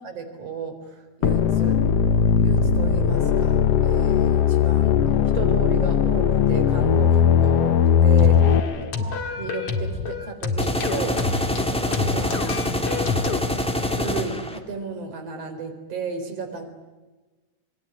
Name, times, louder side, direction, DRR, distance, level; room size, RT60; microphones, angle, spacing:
voice 1, 0.0-1.8 2.4-5.0 5.3-9.1 9.4-13.0 13.9-16.7, right 5 dB, 40° right, 7 dB, 4.9 m, -34 dB
sound 1, 1.2-8.6, left 8 dB, 80° left, 1.4 m, -18 dB
sound 2, 8.2-13.4, left 4 dB, 45° left, 2.4 m, -28 dB
sound 3, 10.6-14.6, left 1 dB, ahead, 1.9 m, -25 dB
27.0 x 21.5 x 9.9 m, 1.2 s
omnidirectional pair, 4.4 m